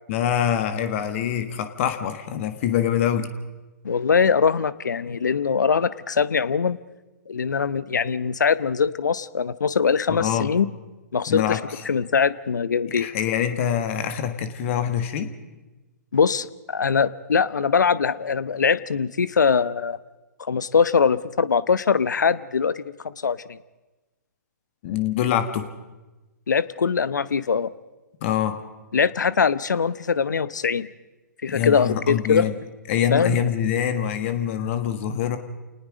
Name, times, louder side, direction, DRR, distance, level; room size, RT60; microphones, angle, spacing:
voice 1, 0.1-3.3 10.1-10.5 11.3-11.6 12.9-15.3 24.8-25.7 28.2-28.6 31.5-32.5 32.9-35.4, left 9 dB, 45° left, 9 dB, 1.6 m, -24 dB
voice 2, 3.8-6.8 7.3-10.7 11.1-11.6 11.8-13.1 16.1-20.0 20.4-23.6 26.5-27.7 28.9-30.9 31.4-32.5 33.1-33.3, left 6 dB, 80° left, 17 dB, 0.8 m, -22 dB
28.0 x 19.5 x 5.1 m, 1.1 s
hypercardioid pair, 125°, 10 cm